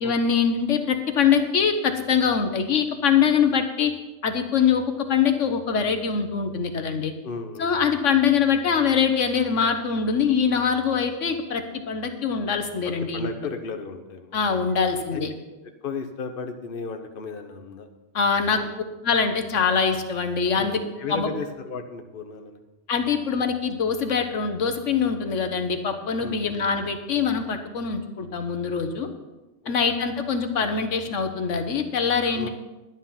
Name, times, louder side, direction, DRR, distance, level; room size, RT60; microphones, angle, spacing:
voice 1, 0.0-3.9 4.2-4.8 5.1-7.1 7.6-13.3 14.3-15.3 18.1-18.6 19.0-20.8 21.1-21.3 22.9-29.1 29.7-32.5, left 6 dB, 75° left, 7 dB, 1.3 m, -23 dB
voice 2, 7.2-7.7 12.8-14.4 15.1-15.2 15.5-15.6 15.8-17.9 18.4-18.7 20.5-22.6 26.2-26.6 29.6-29.7 32.3-32.5, left 4 dB, 50° left, 6 dB, 1.1 m, -35 dB
11.5 x 9.9 x 5.7 m, 1.1 s
omnidirectional pair, 1.3 m